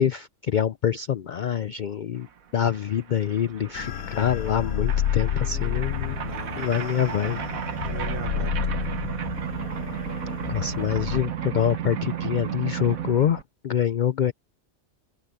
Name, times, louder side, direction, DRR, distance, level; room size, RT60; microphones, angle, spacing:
voice 1, 0.0-2.3 2.5-6.2 6.5-7.4 10.5-14.3, left 9 dB, 70° left, 0.4 m, -25 dB
sound 1, 2.3-2.4 2.5-13.4, right 9 dB, 85° right, 1.6 m, -33 dB
sound 2, 3.7-11.2, left 11 dB, 85° left, 1.1 m, -30 dB
voice 2, 5.2-6.8 7.8-9.1, right 7 dB, 50° right, 0.9 m, -41 dB
omnidirectional pair, 1.4 m